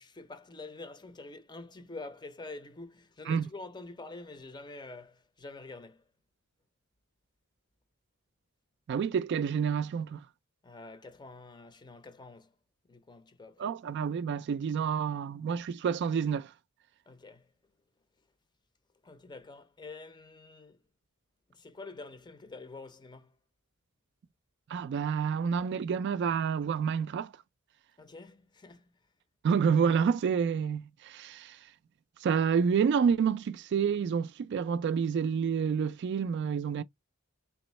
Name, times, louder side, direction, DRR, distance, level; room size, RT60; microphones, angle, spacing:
voice 1, 0.0-6.0 10.6-12.5 12.9-13.7 17.1-17.5 19.0-20.8 21.5-23.4 28.0-29.0, left 3 dB, 20° left, 0.6 m, -47 dB
voice 2, 8.9-10.3 13.6-16.5 24.7-27.3 29.4-31.6 32.2-36.8, right 6 dB, 55° right, 0.3 m, -28 dB
3.4 x 3.0 x 3.1 m
head